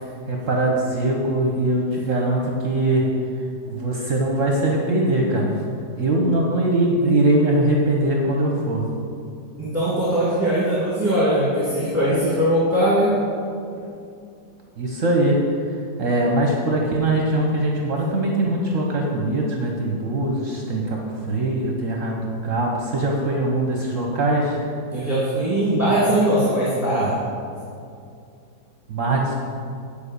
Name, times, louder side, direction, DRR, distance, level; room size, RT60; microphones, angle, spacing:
voice 1, 0.0-3.1 3.6-5.6 6.0-8.9 14.8-15.4 15.7-24.6 28.9-29.3, right 1 dB, 55° right, 0 dB, 1.2 m, -22 dB
voice 2, 9.6-13.1 13.8-13.9 24.9-27.1, right 1 dB, 10° right, -11 dB, 2.2 m, -20 dB
9.4 x 5.0 x 6.7 m, 2.5 s
omnidirectional pair, 1.8 m